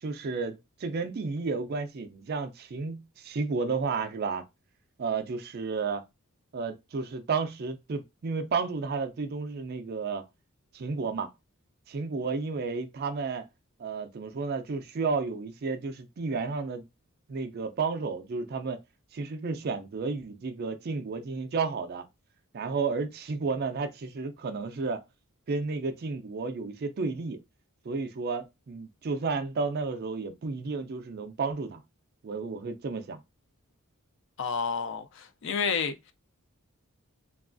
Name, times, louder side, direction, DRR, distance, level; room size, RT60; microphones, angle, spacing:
voice 1, 0.0-4.4 5.0-6.0 6.5-10.2 10.7-11.3 11.9-13.5 13.8-16.8 17.3-18.8 19.1-22.0 22.5-25.0 25.5-27.4 27.8-31.8 32.2-33.2, right 4 dB, 45° right, 0.4 m, -32 dB
voice 2, 34.4-36.1, left 6 dB, 55° left, 0.4 m, -30 dB
3.0 x 2.3 x 2.4 m
head